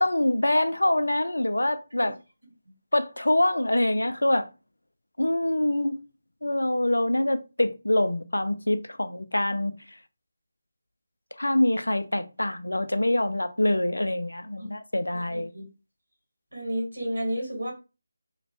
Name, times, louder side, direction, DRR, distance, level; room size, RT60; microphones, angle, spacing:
voice 1, 0.0-2.1 2.9-4.5 5.2-6.0 6.4-9.7 11.4-15.5, left 1 dB, 80° left, 0.4 m, -25 dB
voice 2, 15.1-15.6 16.5-17.7, equal, 85° right, 1.7 m, -32 dB
2.9 x 2.1 x 2.7 m
figure-of-eight pair, 160°, 0 cm